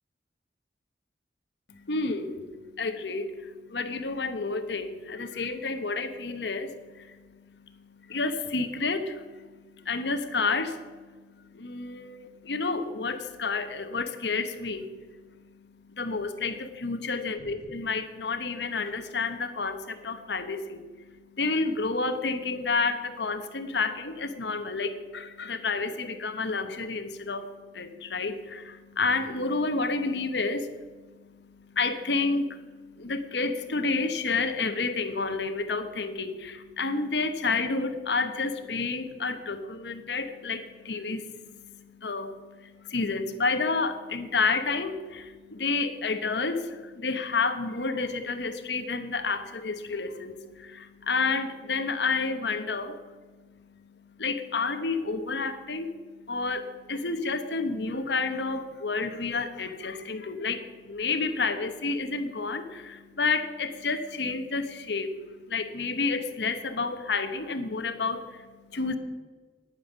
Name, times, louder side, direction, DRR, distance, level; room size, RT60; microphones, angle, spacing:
voice 1, 1.7-69.0, left 4 dB, 80° left, 9 dB, 1.1 m, -30 dB
9.9 x 9.2 x 7.3 m, 1.4 s
head